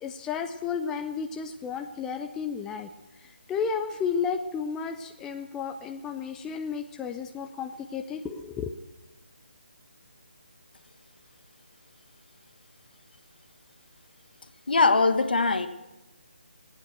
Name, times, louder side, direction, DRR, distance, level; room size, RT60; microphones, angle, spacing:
voice 1, 0.0-2.9 3.5-8.7, left 6 dB, 10° left, 5 dB, 0.4 m, -32 dB
voice 2, 14.7-15.7, left 3 dB, 60° left, 9 dB, 1.3 m, -21 dB
19.5 x 9.0 x 7.8 m, 1.1 s
figure-of-eight pair, 150°, 6 cm